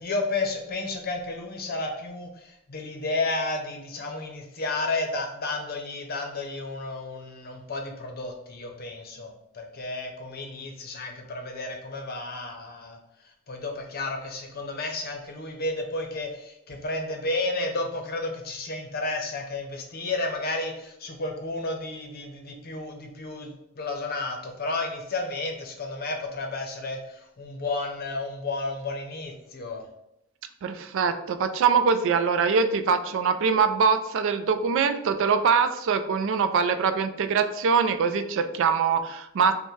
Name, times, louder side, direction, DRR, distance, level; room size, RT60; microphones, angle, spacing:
voice 1, 0.0-13.0 13.5-29.8, left 2 dB, 45° left, 3 dB, 0.7 m, -32 dB
voice 2, 30.6-39.5, right 6 dB, 65° right, 9 dB, 0.4 m, -23 dB
5.5 x 2.2 x 3.2 m, 0.81 s
head